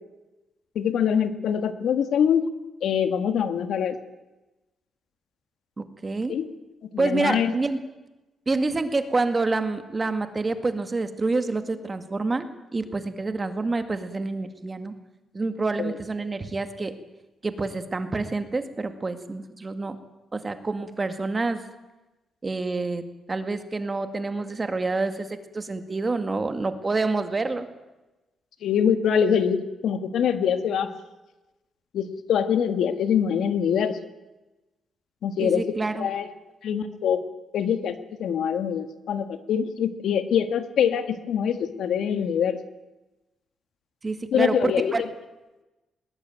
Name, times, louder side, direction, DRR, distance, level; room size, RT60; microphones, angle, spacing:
voice 1, 0.8-2.4 2.8-4.0 6.3-6.5 6.9-7.6 15.8-15.9 28.6-30.9 31.9-34.0 35.2-35.6 36.0-36.3 36.6-37.2 37.5-42.6 44.3-45.0, left 8 dB, 80° left, 9 dB, 1.9 m, -24 dB
voice 2, 5.8-6.4 7.0-7.8 8.5-14.9 15.3-16.9 17.4-20.0 20.3-21.6 22.4-23.0 23.3-25.3 25.5-27.7 35.4-36.1 44.0-45.0, right 3 dB, 25° right, 9 dB, 2.0 m, -27 dB
20.5 x 20.0 x 9.1 m, 1.1 s
cardioid pair, 135°, 0 cm